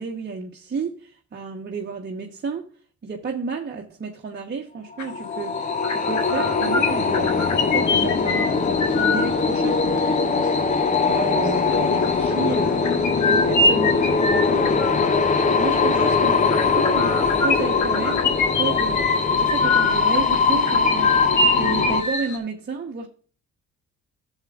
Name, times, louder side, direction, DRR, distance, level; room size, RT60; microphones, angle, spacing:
voice 1, 0.0-2.7 3.0-7.4 7.7-10.5 11.0-13.0 13.2-23.1, right 5 dB, 35° right, 1.2 m, -32 dB
sound 1, 4.9-22.0, left 4 dB, 25° left, 0.8 m, -21 dB
sound 2, 5.0-5.3 5.6-22.4, left 3 dB, 75° left, 1.6 m, -27 dB
11.5 x 7.4 x 2.4 m
cardioid pair, 90°, 30 cm